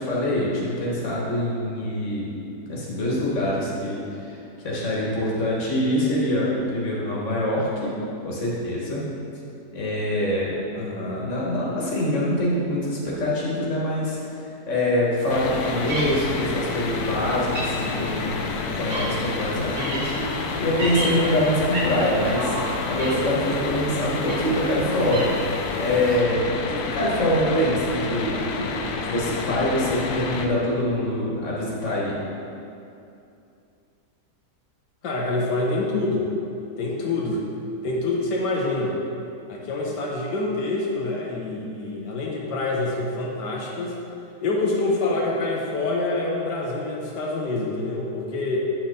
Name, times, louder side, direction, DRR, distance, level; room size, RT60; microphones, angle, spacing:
voice 1, 0.0-2.3 2.6-4.4 4.6-7.9 8.2-9.0 9.7-10.5 11.1-18.4 18.7-25.4 25.8-28.7 29.0-32.2, left 1 dB, 45° left, -5 dB, 1.8 m, -25 dB
voice 2, 10.7-11.3 35.0-36.3 36.8-37.4 37.8-38.9 39.5-43.9 44.4-48.6, left 2 dB, 85° left, -2 dB, 1.5 m, -26 dB
sound 1, 15.2-26.2, equal, 45° right, 1.4 m, -34 dB
sound 2, 15.3-30.5, left 4 dB, 70° left, 1.1 m, -30 dB
Buzz, 20.1-29.6, right 4 dB, 65° right, 0.4 m, -36 dB
8.6 x 6.0 x 3.9 m, 2.6 s
omnidirectional pair, 1.8 m